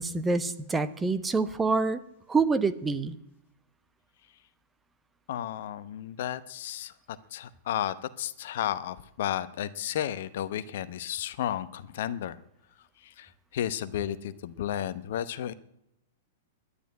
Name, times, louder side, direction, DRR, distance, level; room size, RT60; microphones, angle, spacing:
voice 1, 0.0-2.0 2.3-3.1, right 4 dB, 15° right, 11 dB, 1.0 m, -26 dB
voice 2, 5.3-12.4 13.0-15.5, left 11 dB, 60° left, 14 dB, 0.9 m, -33 dB
11.5 x 10.0 x 9.5 m, 0.80 s
hypercardioid pair, 105°, 0 cm